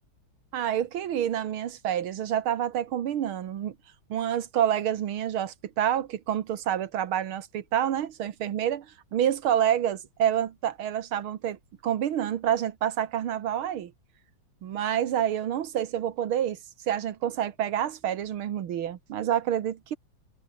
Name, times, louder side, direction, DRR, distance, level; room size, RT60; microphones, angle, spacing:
voice 1, 0.5-3.7 4.1-8.9 9.1-13.9 14.6-16.6 16.9-20.0, right 10 dB, 90° right, 2.1 m, -28 dB
omnidirectional pair, 2.2 m